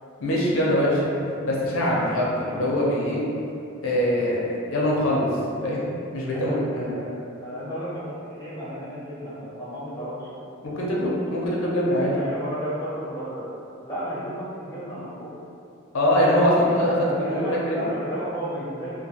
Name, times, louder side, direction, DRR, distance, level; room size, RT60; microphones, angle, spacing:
voice 1, 0.2-1.1 1.4-3.2 3.8-5.3 5.6-6.9 10.6-12.1 15.9-17.9, equal, 75° left, -5 dB, 0.5 m, -23 dB
voice 2, 6.3-8.1 8.4-10.4 12.0-15.3 16.5-19.0, equal, 15° left, -9 dB, 0.4 m, -33 dB
2.3 x 2.2 x 2.8 m, 2.6 s
head